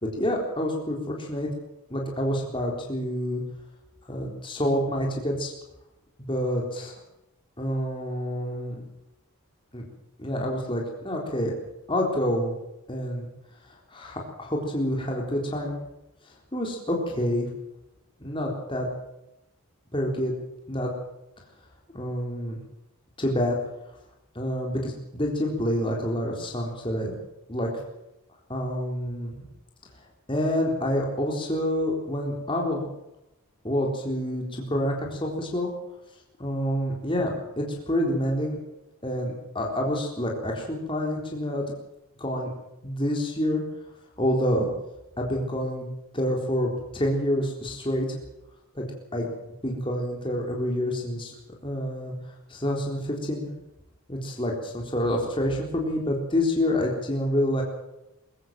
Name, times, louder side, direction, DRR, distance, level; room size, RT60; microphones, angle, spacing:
voice 1, 0.0-1.5 1.9-3.4 4.1-5.5 6.2-6.9 7.6-8.8 9.7-9.9 10.2-11.5 11.9-12.5 12.9-13.3 13.9-15.8 16.5-17.5 18.2-18.9 19.9-20.3 20.7-20.9 21.9-22.6 23.2-23.6 24.4-27.1 27.5-27.8 28.5-29.4 30.3-32.9 33.6-35.7 36.4-38.6 39.0-41.6 42.2-42.5 42.8-43.6 44.2-44.7 45.2-48.2 48.7-48.8 49.1-49.3 49.6-51.3 51.6-52.1 52.5-53.5 54.1-57.6, equal, 20° left, 0 dB, 3.9 m, -27 dB
23.0 x 15.5 x 7.6 m, 0.90 s
head